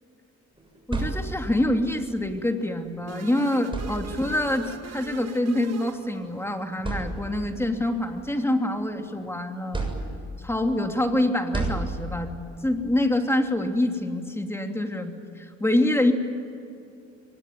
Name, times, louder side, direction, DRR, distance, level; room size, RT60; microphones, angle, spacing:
sound 1, 0.6-1.7 3.0-3.1 3.6-4.5 5.6-5.7 6.3-6.4 6.8-7.6 8.1-9.2 9.7-10.5 11.5-12.4, right 2 dB, 15° right, 7.0 m, -32 dB
voice 1, 0.9-9.9 10.4-12.3 12.6-16.1, left 1 dB, 10° left, 4 dB, 3.0 m, -26 dB
sound 2, 3.1-6.7, right 8 dB, 55° right, 1.3 m, -42 dB
23.5 x 20.5 x 9.5 m, 2.5 s
cardioid pair, 90°, 30 cm